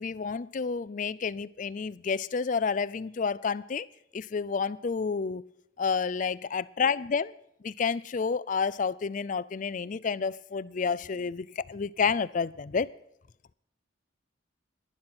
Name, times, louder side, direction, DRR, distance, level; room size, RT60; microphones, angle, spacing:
voice 1, 0.0-3.9 4.1-5.4 5.8-7.3 7.6-12.9, left 5 dB, 40° left, 0.4 m, -30 dB
11.5 x 11.5 x 6.1 m
head